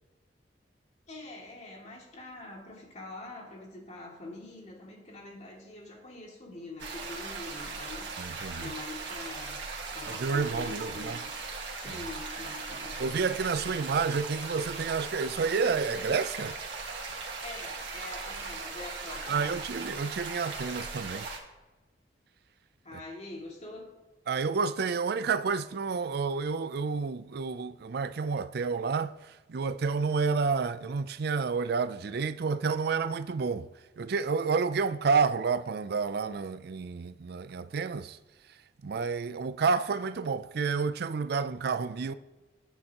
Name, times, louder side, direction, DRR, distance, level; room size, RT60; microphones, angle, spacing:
voice 1, 1.1-9.6 9.9-11.3 11.7-13.0 13.6-13.9 17.4-19.5 22.8-24.0, left 2 dB, 40° left, 2.3 m, -45 dB
sound 1, 6.8-21.4, right 4 dB, 80° right, 1.7 m, -39 dB
voice 2, 8.2-8.7 10.1-11.2 11.9-12.0 13.0-16.6 19.3-21.3 22.9-23.0 24.3-33.7 34.0-38.2 38.5-38.6 38.8-42.1, right 5 dB, 60° right, 0.4 m, -30 dB
18.5 x 6.8 x 2.9 m
head